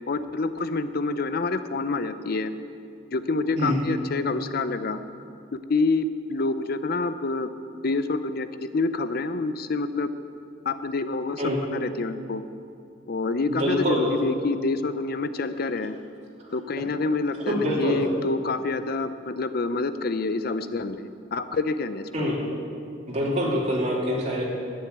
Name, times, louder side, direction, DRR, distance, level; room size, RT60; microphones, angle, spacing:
voice 1, 0.1-2.5 3.1-5.0 5.7-7.5 7.8-8.5 8.7-10.1 10.7-11.4 11.7-12.4 13.1-16.0 16.5-22.3, left 3 dB, 50° left, 11 dB, 0.5 m, -27 dB
voice 2, 13.4-14.1 17.5-18.0 22.1-22.4 23.1-24.5, equal, 35° right, -4 dB, 2.9 m, -25 dB
11.0 x 8.9 x 9.2 m, 2.4 s
head